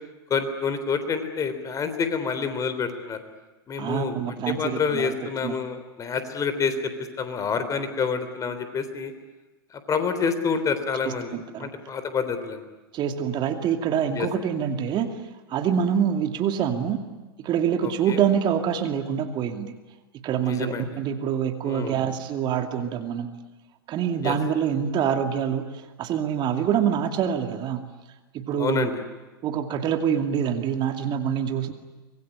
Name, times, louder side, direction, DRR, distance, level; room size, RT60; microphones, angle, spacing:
voice 1, 0.3-3.2 3.7-6.9 7.2-9.1 9.7-11.3 11.6-12.6 14.1-14.3 17.8-18.2 20.4-20.9 21.6-22.0 24.2-24.3 28.6-28.9, left 5 dB, 25° left, 10 dB, 3.5 m, -28 dB
voice 2, 3.8-5.1 5.4-5.5 11.0-11.7 12.9-15.2 15.5-17.0 17.4-19.7 20.2-23.3 23.9-27.8 28.3-28.9 29.4-31.7, right 8 dB, 40° right, 6 dB, 2.5 m, -25 dB
25.0 x 21.5 x 9.8 m, 1.2 s
hypercardioid pair, 95°, 12 cm